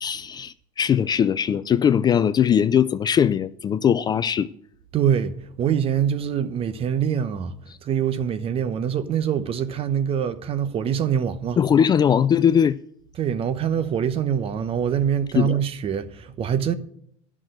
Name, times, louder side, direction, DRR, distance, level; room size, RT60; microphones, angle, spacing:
voice 1, 0.0-4.5 11.6-12.8 15.4-15.6, left 8 dB, 25° left, 0.4 m, -20 dB
voice 2, 4.9-7.5 7.8-11.6 13.2-16.7, right 8 dB, 40° right, 1.0 m, -24 dB
11.0 x 6.2 x 7.7 m
supercardioid pair, 115°, 15 cm